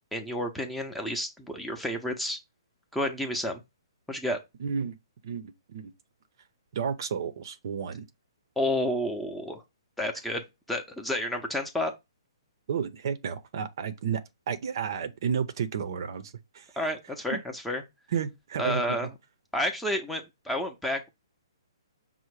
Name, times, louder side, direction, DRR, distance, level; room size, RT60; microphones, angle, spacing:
voice 1, 0.1-2.4 2.9-3.6 4.1-4.4 8.6-9.6 10.0-11.9 16.8-17.8 18.6-19.1 19.5-21.1, left 1 dB, 5° left, 0.6 m, -30 dB
voice 2, 4.6-5.0 5.2-5.9 6.7-8.1 12.7-14.2 14.5-16.7 17.3-17.4 18.1-19.1, right 7 dB, 55° right, 0.6 m, -32 dB
5.6 x 2.1 x 4.6 m
hypercardioid pair, 155°, 3 cm